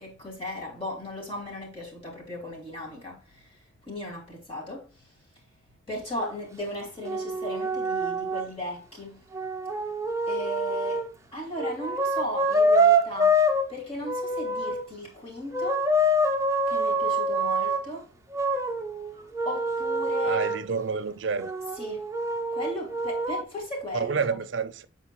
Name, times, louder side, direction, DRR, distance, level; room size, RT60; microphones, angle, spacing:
voice 1, 0.0-3.5 3.8-4.9 5.9-9.2 10.3-13.4 13.7-15.9 16.7-18.1 19.4-20.4 21.8-22.1 22.5-24.4, left 1 dB, 30° left, 2.9 m, -36 dB
sound 1, 6.2-6.3 7.0-8.5 9.3-11.1 11.6-13.6 14.0-14.8 15.5-17.8 18.3-20.6 21.4-23.4, right 1 dB, 15° right, 0.6 m, -26 dB
voice 2, 20.2-21.5 23.9-24.9, right 5 dB, 70° right, 0.6 m, -29 dB
7.6 x 4.4 x 3.0 m
head